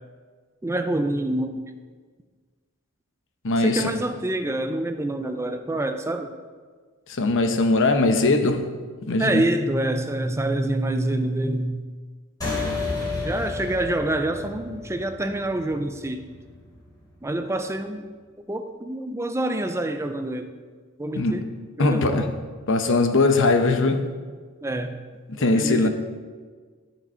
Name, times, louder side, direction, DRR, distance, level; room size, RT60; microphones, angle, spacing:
voice 1, 0.6-1.6 3.6-6.3 9.2-11.8 13.2-16.2 17.2-18.1 18.5-20.5 21.0-21.5 21.8-22.3 24.6-25.0 25.4-25.9, right 1 dB, 15° right, 0.5 m, -26 dB
voice 2, 3.4-3.9 7.1-8.7 9.1-9.4 21.2-21.4 21.8-22.3 22.7-24.0 25.3-25.9, left 2 dB, 60° left, 0.9 m, -20 dB
sound 1, 12.4-17.2, left 3 dB, 20° left, 3.2 m, -32 dB
13.0 x 6.2 x 4.4 m
head